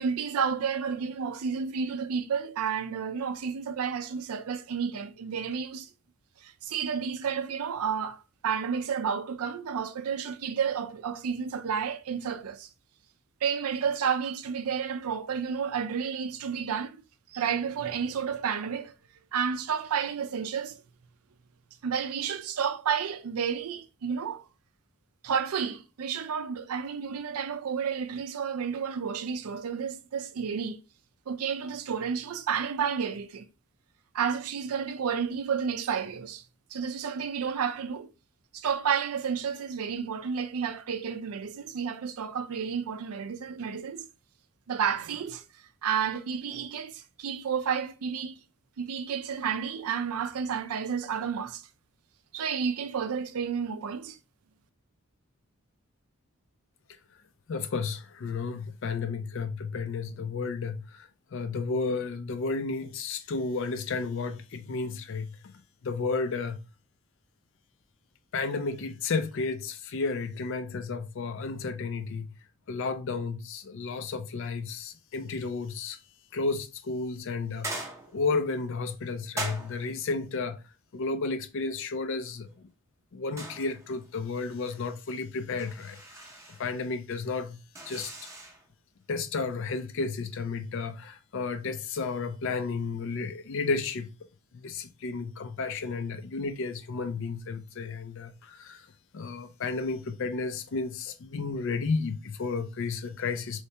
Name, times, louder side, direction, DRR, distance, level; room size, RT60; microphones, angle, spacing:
voice 1, 0.0-5.9 6.4-12.7 13.4-17.0 17.3-18.9 19.3-20.8 21.8-24.4 25.2-30.8 31.3-33.4 34.1-36.4 36.7-38.1 38.5-44.1 44.7-45.4 45.8-48.4 48.8-51.6 52.3-54.2, right 7 dB, 80° right, 0.4 m, -31 dB
voice 2, 57.5-65.3 65.8-66.6 68.3-72.3 72.7-76.0 76.3-77.7 78.1-80.6 80.9-82.7 83.1-86.0 86.5-87.6 87.9-88.1 89.1-94.1 94.5-98.9 99.1-103.6, left 4 dB, 60° left, 0.4 m, -32 dB
sound 1, 77.6-78.4 79.4-80.1 83.4-84.1 84.4-84.8 85.6-86.7 87.7-88.6, right 2 dB, 15° right, 0.6 m, -40 dB
3.2 x 2.8 x 3.2 m
head